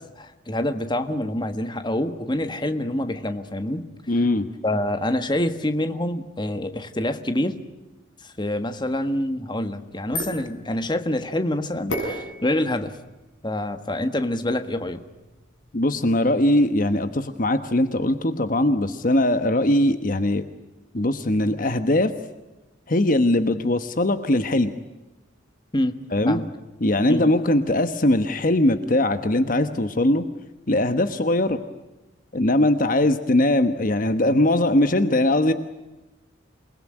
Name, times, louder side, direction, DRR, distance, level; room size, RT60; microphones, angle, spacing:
voice 1, 0.0-4.2 4.6-7.6 8.2-13.0 13.4-15.0 25.7-26.0 26.2-26.5 27.1-27.3, left 1 dB, 25° left, 9 dB, 1.5 m, -26 dB
voice 2, 4.1-4.5 15.7-20.4 20.9-22.1 22.9-24.7 26.1-26.4 26.8-30.2 30.7-31.6 32.3-35.5, left 1 dB, 45° left, 10 dB, 1.2 m, -20 dB
sound 1, 9.7-15.9, equal, 70° left, 7.1 m, -37 dB
28.0 x 20.5 x 9.9 m, 1.1 s
head